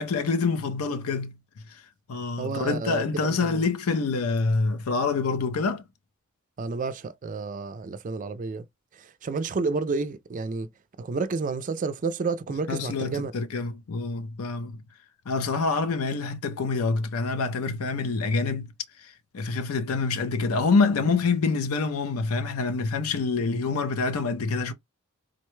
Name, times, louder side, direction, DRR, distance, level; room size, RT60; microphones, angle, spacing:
voice 1, 0.0-1.4 1.7-1.8 2.1-5.8 12.7-14.8 15.3-18.7 19.0-24.7, left 4 dB, 75° left, 0.5 m, -26 dB
voice 2, 2.4-3.6 6.6-8.7 8.9-10.7 11.0-13.3, right 4 dB, 35° right, 0.3 m, -30 dB
3.8 x 2.2 x 3.0 m
head